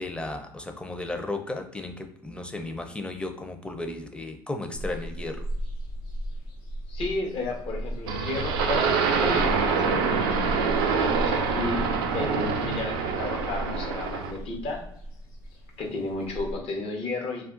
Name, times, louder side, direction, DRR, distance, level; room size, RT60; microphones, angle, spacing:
voice 1, 0.0-5.5, left 2 dB, 10° left, 5 dB, 0.6 m, -34 dB
sound 1, 4.7-16.5, equal, 85° left, 0.8 m, -36 dB
voice 2, 6.9-11.8 12.1-14.8 15.8-17.5, left 3 dB, 55° left, 2 dB, 1.0 m, -33 dB
sound 2, 8.1-14.4, right 5 dB, 85° right, 0.4 m, -26 dB
2.4 x 2.2 x 3.8 m, 0.72 s
hypercardioid pair, 65°, 12 cm